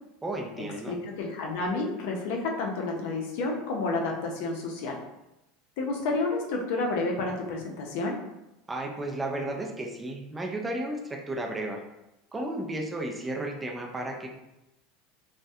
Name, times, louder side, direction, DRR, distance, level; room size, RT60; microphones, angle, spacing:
voice 1, 0.2-1.0 8.7-11.8 12.3-14.3, right 1 dB, 10° right, 1 dB, 0.3 m, -33 dB
voice 2, 0.9-5.0 5.8-8.2, left 3 dB, 65° left, 0 dB, 0.5 m, -30 dB
2.6 x 2.1 x 2.3 m, 0.92 s
supercardioid pair, 145°, 0 cm